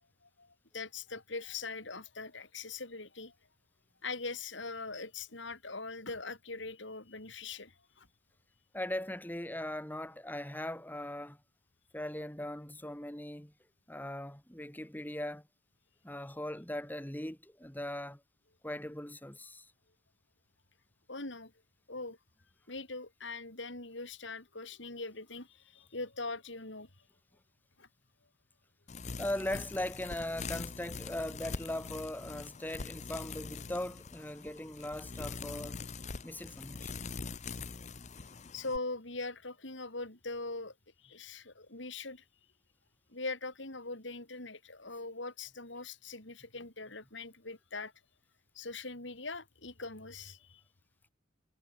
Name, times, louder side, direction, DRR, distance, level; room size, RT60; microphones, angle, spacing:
voice 1, 0.2-3.3 4.0-8.1 21.1-21.5 21.9-22.2 22.7-26.9 27.8-27.9 38.5-42.2 43.1-47.9 48.5-50.6, left 3 dB, 65° left, 4.2 m, -42 dB
voice 2, 8.7-11.4 11.9-13.5 13.9-15.5 16.0-18.2 18.6-19.7 29.2-35.8 36.2-37.1, left 1 dB, 10° left, 2.9 m, -39 dB
sound 1, 28.9-38.8, left 4 dB, 35° left, 0.8 m, -43 dB
head